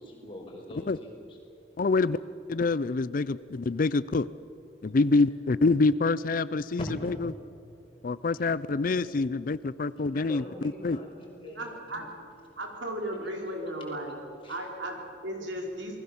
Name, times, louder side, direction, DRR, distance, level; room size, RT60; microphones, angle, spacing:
voice 1, 0.0-1.4 6.8-7.3 7.7-8.4 10.1-12.0 13.2-13.5 13.8-14.0 14.4-14.6, equal, 30° left, -1 dB, 5.7 m, -43 dB
voice 2, 1.8-2.2 2.5-4.3 4.8-6.8 8.0-10.4 10.8-11.0, left 3 dB, 50° left, 17 dB, 0.5 m, -26 dB
voice 3, 11.5-12.1 12.5-14.2 14.5-16.0, right 1 dB, 85° right, 1 dB, 4.7 m, -35 dB
28.0 x 20.0 x 7.2 m, 2.7 s
head